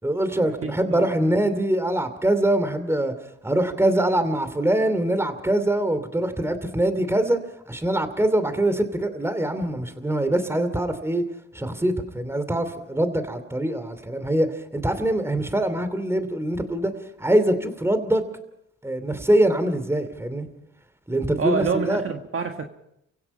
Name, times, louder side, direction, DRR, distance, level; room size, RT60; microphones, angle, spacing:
voice 1, 0.0-3.1 3.4-7.4 7.7-11.2 11.5-14.5 14.7-16.9 17.2-18.2 18.8-20.5 21.1-22.0, right 1 dB, 10° right, 10 dB, 2.8 m, -23 dB
voice 2, 0.6-1.2 21.4-22.7, right 5 dB, 45° right, 5 dB, 1.7 m, -27 dB
29.5 x 16.5 x 5.5 m, 0.78 s
cardioid pair, 90°, 30 cm